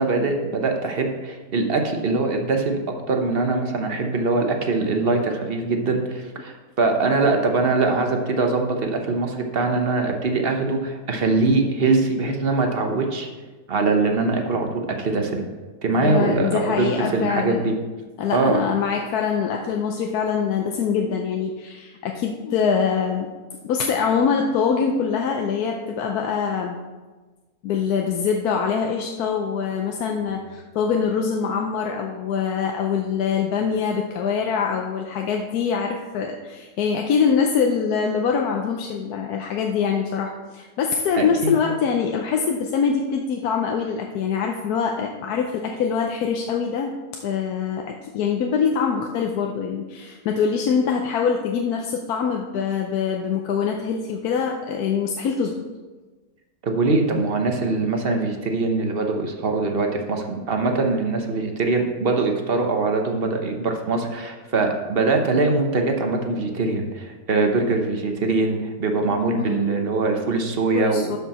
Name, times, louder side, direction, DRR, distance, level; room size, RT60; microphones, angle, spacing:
voice 1, 0.0-2.8 3.1-13.3 13.7-15.4 15.8-17.7 18.3-18.6 41.2-41.5 56.6-71.1, right 3 dB, 45° right, 4 dB, 1.1 m, -22 dB
voice 2, 16.0-17.6 18.2-23.3 23.6-26.8 27.6-46.9 47.2-55.6 69.4-69.7 70.7-71.2, left 6 dB, 80° left, 2 dB, 1.2 m, -24 dB
12.0 x 5.5 x 4.3 m, 1.3 s
omnidirectional pair, 1.6 m